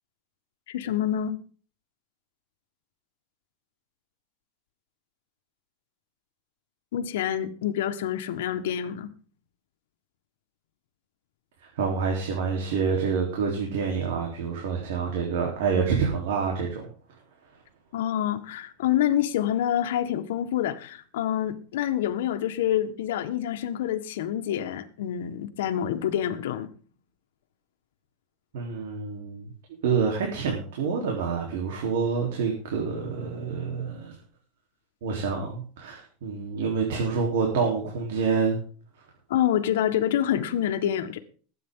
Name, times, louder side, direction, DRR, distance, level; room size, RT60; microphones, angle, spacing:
voice 1, 0.7-1.4 6.9-9.1 17.9-26.7 39.3-41.2, left 11 dB, 85° left, 8 dB, 1.5 m, -27 dB
voice 2, 11.6-16.9 28.5-29.5 29.8-34.1 35.0-38.6, right 5 dB, 80° right, 0 dB, 3.8 m, -27 dB
20.5 x 9.3 x 3.9 m, 0.41 s
supercardioid pair, 160°, 0 cm